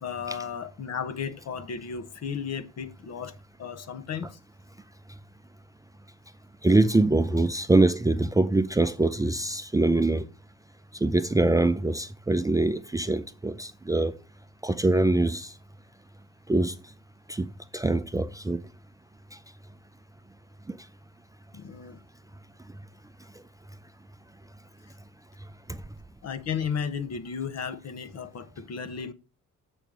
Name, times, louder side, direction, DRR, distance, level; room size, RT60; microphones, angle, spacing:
voice 1, 0.0-4.4 21.5-22.0 26.2-29.1, left 7 dB, 55° left, 1.0 m, -34 dB
voice 2, 6.6-10.2 11.0-14.1 14.6-15.5 16.5-16.7 17.3-17.5 17.7-18.6 20.7-20.8 25.7-25.8, right 2 dB, 10° right, 0.5 m, -23 dB
7.1 x 4.5 x 5.0 m
cardioid pair, 90°, 30 cm